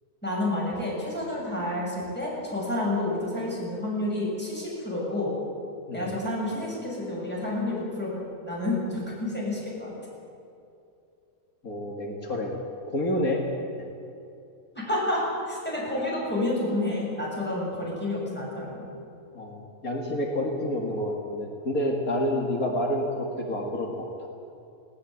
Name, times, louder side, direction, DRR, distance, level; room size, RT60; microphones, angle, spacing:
voice 1, 0.2-5.3 5.9-9.9 14.7-18.8, left 1 dB, 5° left, -5 dB, 7.5 m, -29 dB
voice 2, 11.6-12.6 12.9-13.4 19.3-24.3, left 1 dB, 70° left, 0 dB, 2.4 m, -29 dB
19.0 x 18.0 x 8.5 m, 2.6 s
omnidirectional pair, 1.6 m